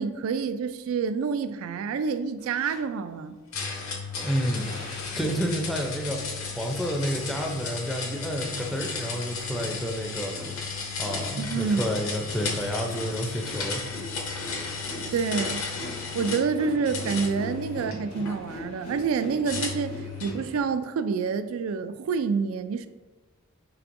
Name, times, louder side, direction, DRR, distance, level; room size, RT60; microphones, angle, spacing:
voice 1, 0.0-3.4 11.4-11.8 15.1-15.6 16.1-22.9, right 5 dB, 70° right, 0.3 m, -28 dB
sound 1, 2.4-2.8 3.7-20.6, left 1 dB, 85° left, 1.1 m, -42 dB
sound 2, 3.5-16.5 16.8-18.3 19.4-20.4, left 5 dB, 70° left, 0.8 m, -34 dB
voice 2, 4.2-4.8 5.2-6.2 6.5-10.3 11.0-13.8, equal, ahead, 0.5 m, -30 dB
5.8 x 3.3 x 2.6 m
head